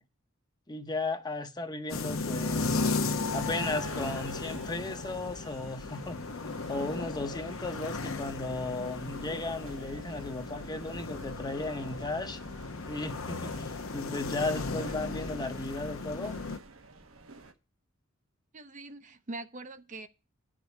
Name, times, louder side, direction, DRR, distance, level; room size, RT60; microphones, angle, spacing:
voice 1, 0.7-2.8 3.3-12.4 12.9-16.4, left 2 dB, 20° left, 0.8 m, -35 dB
sound 1, 1.9-16.6, left 3 dB, 80° left, 1.0 m, -35 dB
sound 2, 2.1-17.5, right 3 dB, 85° right, 1.1 m, -53 dB
voice 2, 18.5-20.1, right 2 dB, 40° right, 0.7 m, -42 dB
10.0 x 5.1 x 8.2 m
head